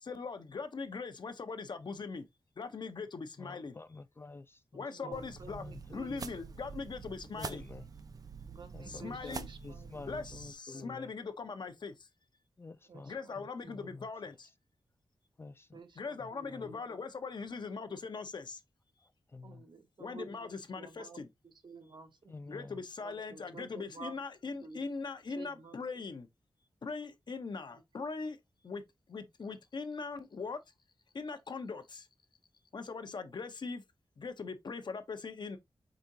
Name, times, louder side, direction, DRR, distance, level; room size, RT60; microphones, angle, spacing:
voice 1, 0.0-2.3 2.6-3.8 4.7-7.6 8.9-9.5 10.1-11.9 13.1-14.5 16.0-18.6 20.0-21.3 22.5-26.3 26.8-28.4 28.6-28.8 29.1-30.6 31.1-32.1 32.7-33.8 34.2-35.6, left 4 dB, 55° left, 0.8 m, -41 dB
voice 2, 3.4-5.8 6.1-6.3 7.4-7.9 8.7-11.1 12.6-14.4 15.4-15.8 16.2-16.7 19.0-19.6 22.3-22.8, left 3 dB, 25° left, 0.3 m, -49 dB
voice 3, 4.7-6.3 8.5-10.1 10.7-11.0 12.8-14.0 15.7-17.0 19.4-22.3 23.0-24.2 24.6-24.8 25.3-26.1 27.7-27.8 33.2-33.4, right 4 dB, 60° right, 1.0 m, -52 dB
sound 1, 5.1-10.5, right 5 dB, 45° right, 0.5 m, -46 dB
5.0 x 3.6 x 2.7 m
wide cardioid pair, 85°, 9 cm